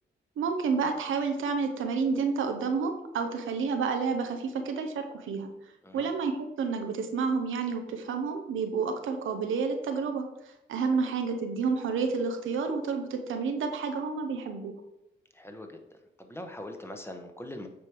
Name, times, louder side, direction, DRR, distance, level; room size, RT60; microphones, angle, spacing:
voice 1, 0.4-5.5 5.9-10.2 10.7-14.8, right 5 dB, 85° right, 6 dB, 0.8 m, -30 dB
voice 2, 15.3-15.8 16.2-17.7, left 1 dB, 10° left, 5 dB, 1.1 m, -42 dB
8.6 x 3.2 x 4.7 m, 0.92 s
cardioid pair, 60°, 20 cm